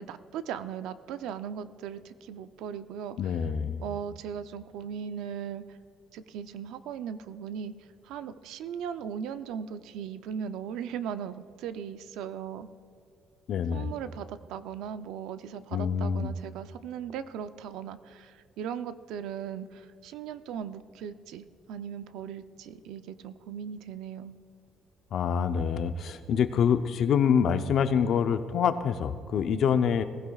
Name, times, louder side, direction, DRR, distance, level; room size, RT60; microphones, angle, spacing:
voice 1, 0.0-3.3 3.8-5.6 6.1-7.7 8.0-12.7 13.7-24.4, right 8 dB, 85° right, 11 dB, 0.5 m, -38 dB
voice 2, 3.2-3.8 13.5-13.9 15.7-16.3 25.1-30.0, left 7 dB, 50° left, 9 dB, 0.6 m, -26 dB
20.5 x 15.5 x 2.4 m, 2.3 s
cardioid pair, 160°, 0 cm